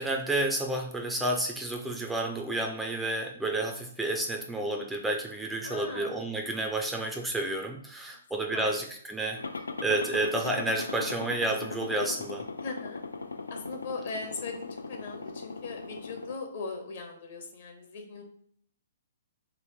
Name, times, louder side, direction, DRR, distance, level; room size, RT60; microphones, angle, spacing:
voice 1, 0.0-9.4 9.8-12.4, right 2 dB, 5° right, 2 dB, 0.3 m, -30 dB
voice 2, 5.6-6.2 8.5-8.8 12.6-13.0 13.5-18.2, left 4 dB, 50° left, 3 dB, 0.9 m, -39 dB
sound 1, 9.4-16.3, left 3 dB, 75° left, 0.3 m, -39 dB
3.1 x 3.1 x 4.4 m, 0.62 s
figure-of-eight pair, 120°, 0 cm